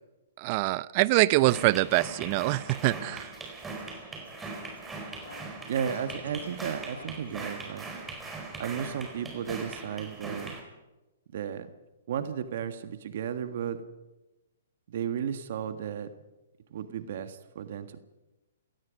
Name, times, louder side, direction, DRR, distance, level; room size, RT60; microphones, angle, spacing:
voice 1, 0.4-3.3, right 19 dB, 40° right, 20 dB, 0.7 m, -24 dB
sound 1, 1.3-10.6, right 3 dB, 10° right, 4.6 m, -40 dB
Scratching (performance technique), 3.4-5.6 5.8-7.4, left 3 dB, 85° left, 6.0 m, -52 dB
voice 2, 5.7-7.9 8.6-10.6 11.3-11.7 12.1-13.8 14.9-16.1 16.7-18.0, right 8 dB, 60° right, 10 dB, 1.6 m, -34 dB
30.0 x 17.5 x 5.3 m, 1.0 s
hypercardioid pair, 140°, 0 cm